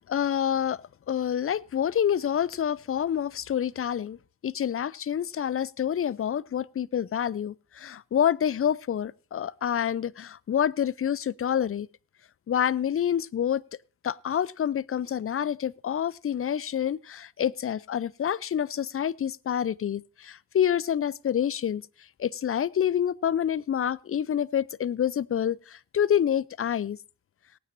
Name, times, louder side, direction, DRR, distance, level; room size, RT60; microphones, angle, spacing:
voice 1, 0.1-0.8 1.1-4.2 4.4-11.9 12.5-13.6 14.0-21.9 22.2-27.0, left 9 dB, 35° left, 0.5 m, -27 dB
18.5 x 9.4 x 2.6 m
supercardioid pair, 40°, 40 cm